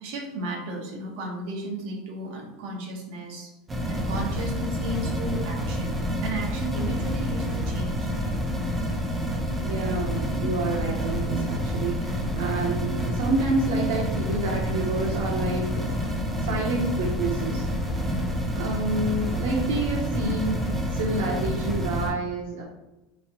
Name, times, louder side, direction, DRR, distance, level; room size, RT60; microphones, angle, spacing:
voice 1, 0.0-3.5 3.9-8.0 18.0-18.6, right 1 dB, 50° right, -2 dB, 1.0 m, -34 dB
sound 1, 3.7-22.1, equal, 10° right, 0.7 m, -28 dB
voice 2, 9.6-15.9 16.4-17.7 18.5-22.6, right 2 dB, 80° right, -1 dB, 0.7 m, -28 dB
3.6 x 3.1 x 2.9 m, 0.99 s
supercardioid pair, 180°, 0 cm